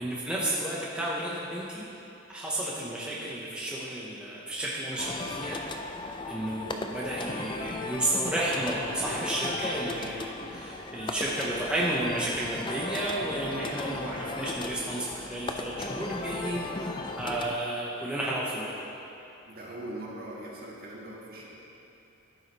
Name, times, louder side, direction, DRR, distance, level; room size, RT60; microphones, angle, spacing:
voice 1, 0.0-1.9 2.3-5.6 6.3-16.9 17.2-18.7, right 1 dB, 5° right, -6 dB, 0.8 m, -32 dB
sound 1, 5.0-17.5, left 2 dB, 25° left, 0.4 m, -36 dB
voice 2, 19.5-21.5, right 1 dB, 50° right, -5 dB, 1.7 m, -41 dB
14.0 x 4.9 x 4.1 m, 3.0 s
head